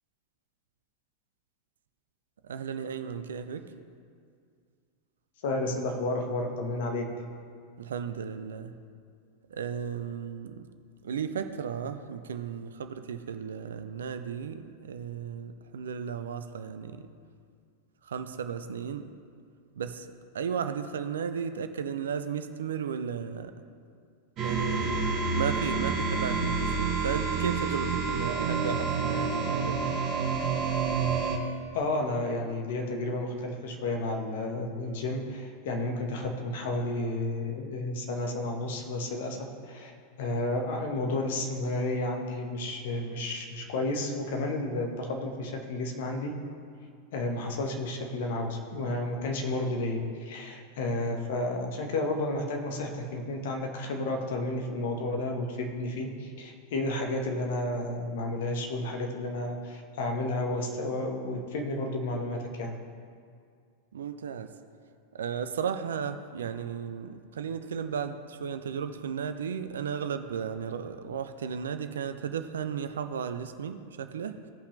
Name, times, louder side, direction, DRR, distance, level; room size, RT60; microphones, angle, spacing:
voice 1, 2.4-3.6 7.8-8.7 9.5-10.6 11.0-17.1 18.1-19.0 19.8-20.1 20.3-23.5 24.4-29.8 63.9-64.5 65.1-74.4, right 7 dB, 65° right, 9 dB, 0.5 m, -34 dB
voice 2, 5.4-7.0 31.7-46.3 47.1-62.8, left 2 dB, 55° left, 2 dB, 1.3 m, -32 dB
sound 1, 24.4-31.4, right 5 dB, 35° right, 1.3 m, -28 dB
16.5 x 5.6 x 3.2 m, 2.2 s
figure-of-eight pair, 90°, 0 cm